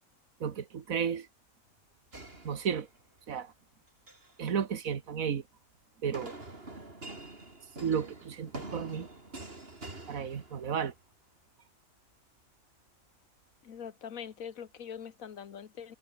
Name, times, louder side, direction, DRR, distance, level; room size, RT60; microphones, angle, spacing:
voice 1, 0.4-1.3 2.4-2.9 3.3-3.5 4.4-5.4 6.0-6.3 7.8-9.1 10.1-10.9, right 7 dB, 85° right, 1.8 m, -33 dB
sound 1, 2.1-3.2 3.9-4.4 6.1-11.0, right 2 dB, 45° right, 4.1 m, -46 dB
voice 2, 13.6-16.0, left 7 dB, 80° left, 1.7 m, -43 dB
omnidirectional pair, 1.4 m